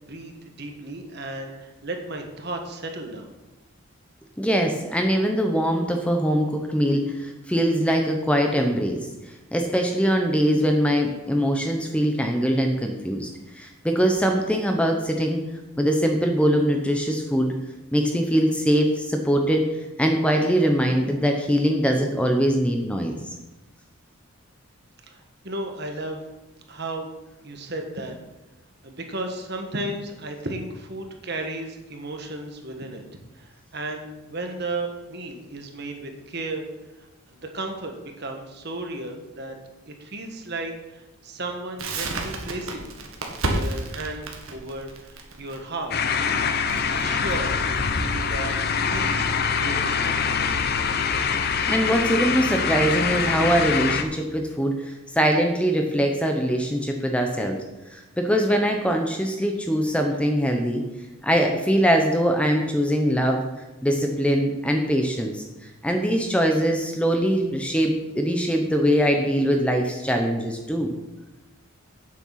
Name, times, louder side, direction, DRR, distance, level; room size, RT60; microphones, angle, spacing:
voice 1, 0.1-3.3 25.1-26.2 26.7-27.1 27.4-28.1 28.8-33.0 33.3-36.6 37.0-39.6 39.9-42.9 43.5-46.4 46.7-47.5 47.9-48.5 48.8-49.3 49.6-50.4, right 2 dB, 50° right, 4 dB, 1.4 m, -34 dB
voice 2, 4.4-9.0 9.5-13.3 13.6-15.4 15.8-17.5 17.9-19.6 20.0-23.1 51.4-57.6 57.9-60.8 61.2-63.4 63.8-65.4 65.8-70.9, equal, 5° left, 3 dB, 0.8 m, -22 dB
Crackle, 41.8-48.6, right 2 dB, 70° right, 1.6 m, -32 dB
sound 1, 45.9-54.0, left 6 dB, 45° left, 0.7 m, -24 dB
9.0 x 7.6 x 5.8 m, 1.0 s
head